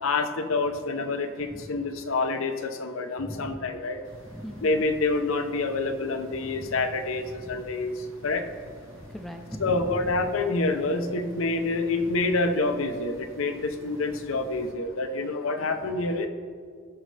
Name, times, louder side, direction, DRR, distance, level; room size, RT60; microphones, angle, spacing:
voice 1, 0.0-4.0 4.6-7.9 8.2-8.4 9.6-16.3, left 3 dB, 75° left, 7 dB, 0.7 m, -27 dB
voice 2, 1.4-2.0 3.2-3.8 4.2-4.8 6.3-6.8 7.2-7.6 9.0-10.3 12.0-12.2 15.8-16.1, equal, ahead, 3 dB, 0.5 m, -41 dB
sound 1, 4.0-14.7, equal, 70° right, 1.3 m, -49 dB
16.5 x 6.5 x 3.3 m, 2.1 s
head